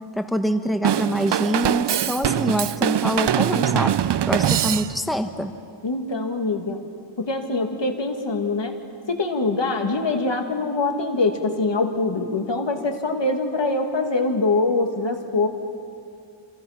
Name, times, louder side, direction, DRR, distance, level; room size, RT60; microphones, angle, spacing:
voice 1, 0.2-3.9 4.3-5.5, equal, ahead, 6 dB, 1.3 m, -25 dB
Drum kit / Drum, 0.8-5.2, right 10 dB, 60° right, 0.6 m, -22 dB
voice 2, 5.8-6.8 7.2-8.8 9.1-15.5, left 3 dB, 65° left, 4 dB, 2.3 m, -24 dB
27.5 x 27.5 x 5.9 m, 2.4 s
wide cardioid pair, 75°, 46 cm